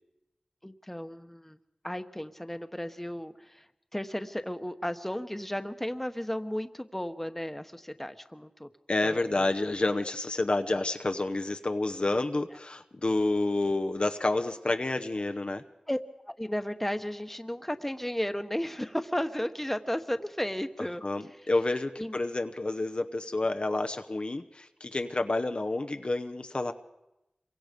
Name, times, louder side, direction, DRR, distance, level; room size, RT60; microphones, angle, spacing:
voice 1, 0.6-1.6 1.8-3.6 3.9-8.7 9.0-9.5 15.9-16.0 16.3-21.0 22.0-22.2, equal, 10° left, 9 dB, 1.2 m, -34 dB
voice 2, 8.9-15.6 21.0-26.7, left 2 dB, 55° left, 7 dB, 0.9 m, -29 dB
26.5 x 23.5 x 5.3 m, 0.96 s
wide cardioid pair, 45°, 2 cm